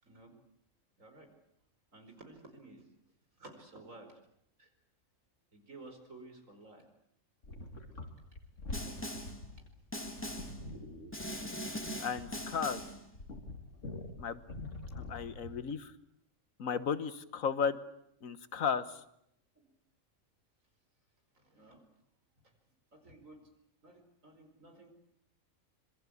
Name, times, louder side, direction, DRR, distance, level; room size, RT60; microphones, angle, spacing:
voice 1, 0.0-0.4 1.0-1.3 1.9-2.9 3.4-4.2 4.6-4.7 5.5-6.9 10.0-10.2 14.8-14.9 19.6-19.7 21.3-21.8 22.4-22.5 22.9-23.5 23.8-24.9, right 2 dB, 80° right, 5 dB, 5.3 m, -54 dB
sound 1, 7.4-15.7, left 2 dB, 70° left, 3.3 m, -46 dB
Snare drum, 8.7-9.4 9.9-10.6 11.1-13.0, equal, 10° left, 2.4 m, -41 dB
voice 2, 12.0-12.8 14.2-14.4 15.0-15.9 16.6-17.8 18.2-18.8, left 6 dB, 90° left, 13 dB, 1.7 m, -34 dB
25.5 x 23.0 x 8.6 m, 0.75 s
omnidirectional pair, 1.4 m